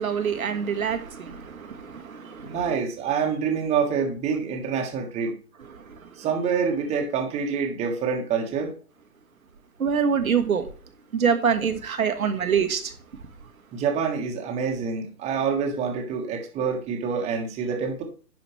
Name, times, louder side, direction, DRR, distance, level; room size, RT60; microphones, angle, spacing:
voice 1, 0.0-2.6 5.8-5.9 9.8-10.6 11.1-12.9, right 7 dB, 65° right, 8 dB, 1.3 m, -25 dB
voice 2, 2.4-5.3 6.2-8.8 13.7-18.0, right 6 dB, 15° right, 2 dB, 1.4 m, -26 dB
11.0 x 5.0 x 3.1 m, 0.39 s
figure-of-eight pair, 125°, 46 cm